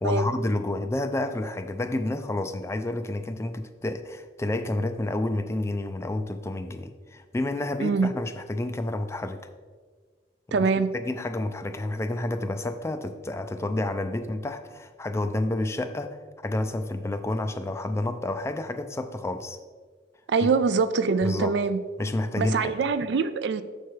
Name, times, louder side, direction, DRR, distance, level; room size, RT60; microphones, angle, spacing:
voice 1, 0.0-9.4 10.5-19.6 21.2-21.5 22.0-22.7, left 2 dB, 15° left, 9 dB, 0.3 m, -30 dB
voice 2, 10.5-10.9 20.3-21.8 22.4-23.6, right 4 dB, 65° right, 13 dB, 0.4 m, -24 dB
6.9 x 4.5 x 4.6 m, 1.5 s
head